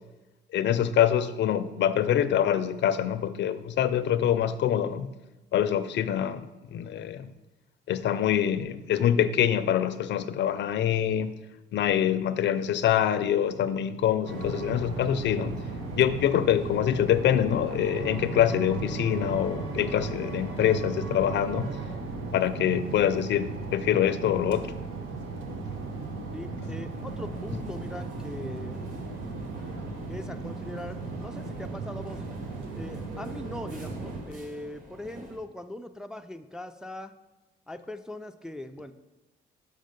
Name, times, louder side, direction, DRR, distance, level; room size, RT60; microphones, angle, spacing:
voice 1, 0.5-5.1 5.5-7.3 7.9-11.3 11.7-15.5 16.0-21.7 22.3-24.7, left 10 dB, 65° left, 0.5 m, -25 dB
sound 1, 14.3-34.2, right 3 dB, 85° right, 1.0 m, -36 dB
voice 2, 26.3-28.8 30.1-32.2 32.7-37.2 37.7-38.9, left 1 dB, 5° right, 0.4 m, -40 dB
sound 2, 26.9-35.4, equal, 45° right, 1.8 m, -47 dB
6.4 x 5.1 x 5.2 m
cardioid pair, 90°, 20 cm